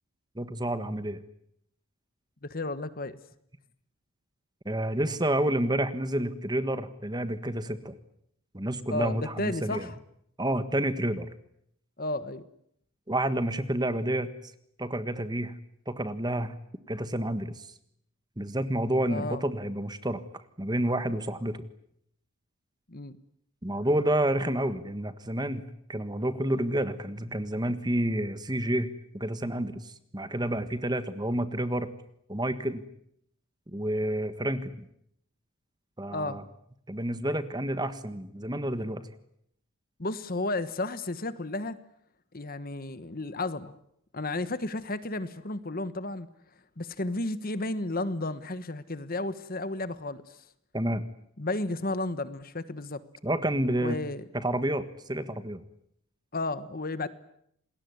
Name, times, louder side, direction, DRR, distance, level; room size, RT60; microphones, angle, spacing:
voice 1, 0.3-1.2 4.6-8.0 8.5-9.9 10.4-11.3 13.1-14.3 14.8-15.5 15.9-16.6 16.9-17.7 18.4-21.7 23.6-25.6 25.9-28.9 29.1-31.9 32.3-32.8 33.7-34.8 36.0-36.4 36.9-39.1 50.7-51.1 53.2-54.0 54.3-55.6, right 1 dB, 20° right, 1.5 m, -29 dB
voice 2, 2.4-3.2 8.9-10.0 12.0-12.5 19.1-19.4 22.9-23.1 36.1-36.4 40.0-41.8 42.3-43.7 44.1-46.3 46.8-50.4 51.4-53.0 53.8-54.2 56.3-57.1, left 2 dB, 40° left, 1.3 m, -33 dB
28.0 x 20.5 x 9.6 m
head